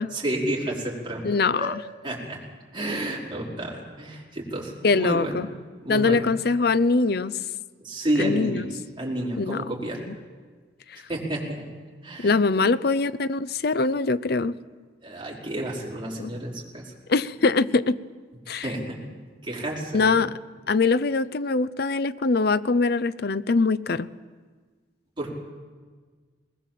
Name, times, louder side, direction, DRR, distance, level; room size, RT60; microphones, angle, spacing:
voice 1, 0.1-1.2 1.6-1.7 2.0-2.4 2.7-5.4 5.8-6.2 7.8-10.0 11.1-11.7 12.0-12.3 15.0-16.9 18.6-19.0 19.4-20.1 25.2-25.3, right 1 dB, 25° right, -3 dB, 4.8 m, -30 dB
voice 2, 1.2-1.8 4.8-5.5 5.9-7.3 8.2-8.6 9.4-9.6 10.1-10.2 10.9-11.0 12.2-14.6 16.2-16.3 17.1-18.0 18.5-18.7 19.9-20.3 20.7-24.1, left 4 dB, 60° left, 16 dB, 0.6 m, -23 dB
21.0 x 20.0 x 7.6 m, 1.5 s
head